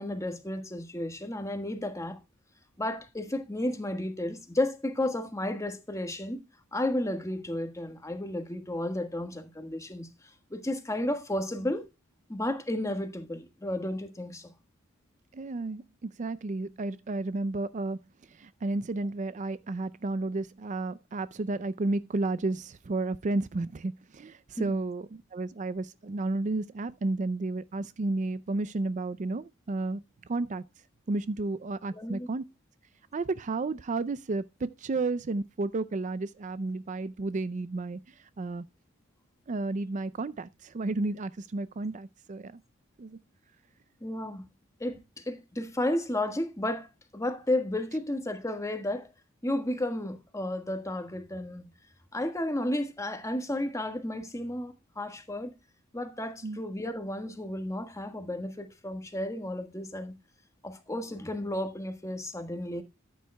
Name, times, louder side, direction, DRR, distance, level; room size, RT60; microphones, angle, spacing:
voice 1, 0.0-2.2 2.8-6.4 6.7-11.8 12.3-14.5 24.6-24.7 31.9-32.3 44.0-44.4 44.8-46.9 47.1-49.1 49.4-51.6 52.1-55.5 55.9-60.1 60.6-62.8, left 1 dB, 15° left, 1.4 m, -33 dB
voice 2, 15.3-30.0 30.3-30.6 31.1-32.4 33.1-38.6 39.5-42.6 43.0-43.2 56.4-56.6, right 2 dB, 35° right, 0.4 m, -32 dB
13.5 x 9.3 x 2.2 m
head